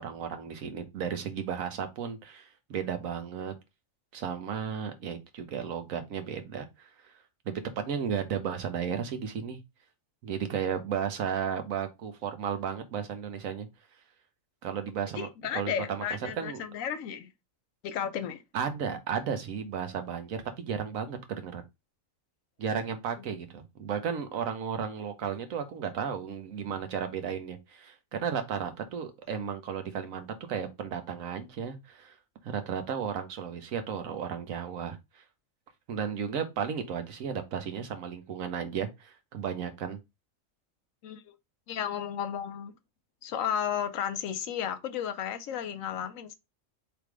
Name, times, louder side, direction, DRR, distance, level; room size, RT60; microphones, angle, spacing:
voice 1, 0.0-3.5 4.1-7.1 7.4-9.6 10.2-13.7 14.6-16.0 16.4-16.6 18.5-21.6 22.6-32.2 32.4-35.2 35.9-40.0, right 7 dB, 85° right, 1.2 m, -34 dB
voice 2, 15.2-17.3 17.8-18.4 41.0-41.3 41.7-42.7 43.2-46.3, left 8 dB, 85° left, 1.0 m, -33 dB
3.4 x 3.0 x 4.6 m
omnidirectional pair, 1.4 m